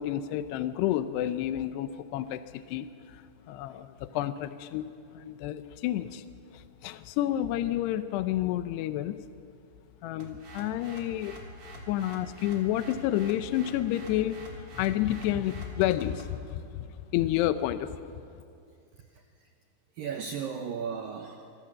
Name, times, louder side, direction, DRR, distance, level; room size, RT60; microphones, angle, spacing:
voice 1, 0.0-6.2 6.5-9.2 10.0-11.4 11.9-18.1, left 12 dB, 80° left, 10 dB, 2.7 m, -30 dB
sound 1, 10.2-16.4, right 2 dB, 35° right, 3.7 m, -46 dB
voice 2, 18.9-19.5 19.9-21.6, right 6 dB, 70° right, 4 dB, 2.3 m, -36 dB
27.0 x 23.5 x 7.6 m, 2.4 s
omnidirectional pair, 5.2 m